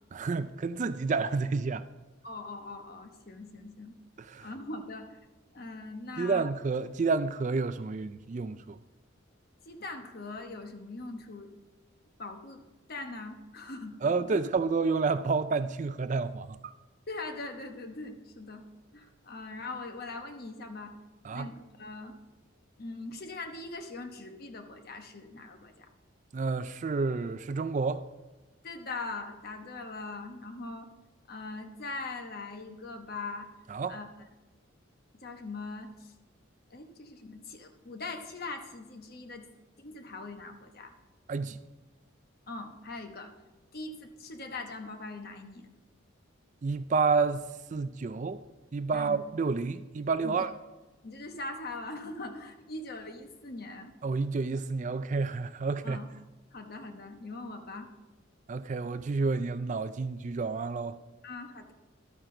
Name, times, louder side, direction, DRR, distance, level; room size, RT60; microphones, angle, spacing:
voice 1, 0.1-1.8 4.2-4.5 6.2-8.8 14.0-16.7 21.2-21.5 26.3-28.1 33.7-34.0 41.3-41.6 46.6-47.4 47.7-48.4 48.7-50.5 54.0-56.0 58.5-61.0, right 4 dB, 35° right, 0.3 m, -30 dB
voice 2, 2.2-3.9 4.4-5.2 5.5-6.4 9.6-11.5 12.2-12.6 12.9-14.0 14.3-14.4 17.1-18.6 18.9-20.9 21.3-22.1 22.8-25.9 28.6-30.9 31.3-33.5 33.9-34.1 35.2-36.1 36.7-39.4 39.8-40.9 42.5-43.3 43.7-45.7 48.9-49.2 50.2-50.4 51.0-53.9 55.8-56.1 56.5-57.9 61.2-61.7, left 3 dB, 50° left, 1.0 m, -41 dB
12.5 x 9.1 x 3.8 m
head